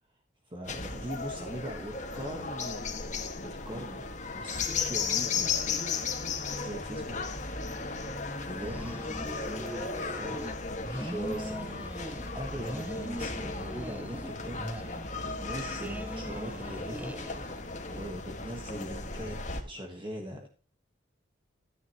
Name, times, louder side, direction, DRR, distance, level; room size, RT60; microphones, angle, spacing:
voice 1, 0.4-2.9 3.4-5.5 6.6-7.2 8.4-10.5 10.9-12.1 12.3-17.1 17.9-19.4 19.6-20.5, equal, 25° right, 2 dB, 1.4 m, -41 dB
sound 1, 0.6-19.6, left 4 dB, 35° left, 1.7 m, -35 dB
sound 2, 8.5-10.6 10.8-12.3 12.6-14.3 14.6-17.8, equal, 10° right, 0.7 m, -41 dB
13.5 x 9.3 x 3.0 m, 0.36 s
head